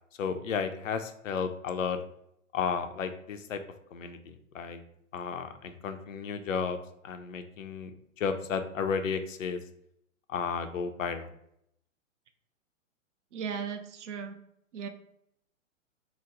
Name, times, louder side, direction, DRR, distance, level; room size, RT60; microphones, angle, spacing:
voice 1, 0.2-2.0 2.5-3.6 3.9-4.8 5.1-6.8 7.0-7.9 8.2-9.6 10.3-11.3, left 6 dB, 75° left, 8 dB, 0.5 m, -33 dB
voice 2, 13.3-14.4 14.7-14.9, right 6 dB, 65° right, 8 dB, 0.5 m, -36 dB
2.9 x 2.0 x 3.7 m, 0.75 s
figure-of-eight pair, 115°, 40 cm